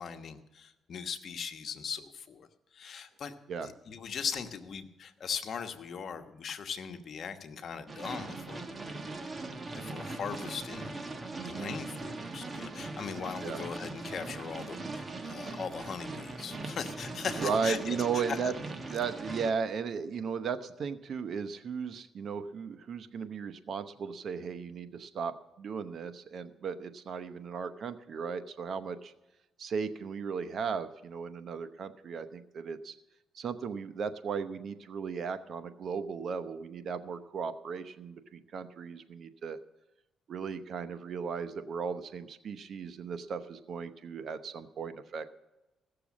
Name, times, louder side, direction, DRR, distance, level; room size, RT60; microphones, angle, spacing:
voice 1, 0.0-2.5 2.7-3.3 3.6-8.6 9.7-10.9 11.4-18.5, left 6 dB, 55° left, 7 dB, 1.1 m, -39 dB
sound 1, 7.9-19.5, right 2 dB, 30° right, 1.3 m, -40 dB
voice 2, 11.4-11.8 13.4-13.6 17.4-18.5 18.9-29.1 29.6-32.9 33.3-39.6 40.3-45.3, right 6 dB, 60° right, 11 dB, 0.9 m, -36 dB
16.0 x 6.8 x 7.3 m, 1.0 s
cardioid pair, 90°, 0 cm